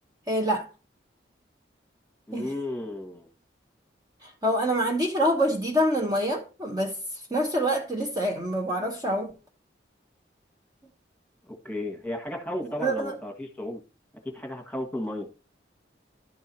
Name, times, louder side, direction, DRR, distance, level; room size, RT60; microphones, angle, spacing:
voice 1, 0.3-0.7 2.3-2.5 4.2-6.9 7.3-9.3 12.8-13.2, equal, 20° right, 1.2 m, -26 dB
voice 2, 2.3-3.3 11.6-13.8 14.3-15.3, left 1 dB, 5° left, 1.7 m, -33 dB
11.5 x 4.7 x 4.4 m
head